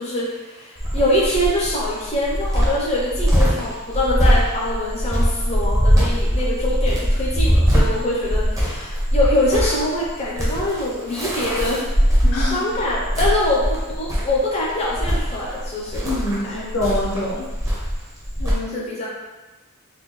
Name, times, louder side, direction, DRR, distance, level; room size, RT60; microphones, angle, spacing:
voice 1, 0.0-16.1 16.4-16.6 18.7-19.1, left 1 dB, 30° left, -5 dB, 0.7 m, -24 dB
Cricket, 0.8-18.5, equal, 15° right, 0.8 m, -21 dB
voice 2, 12.2-12.7 16.0-17.4 18.4-18.8, left 1 dB, 80° left, -4 dB, 0.9 m, -25 dB
4.1 x 2.3 x 3.1 m, 1.1 s
head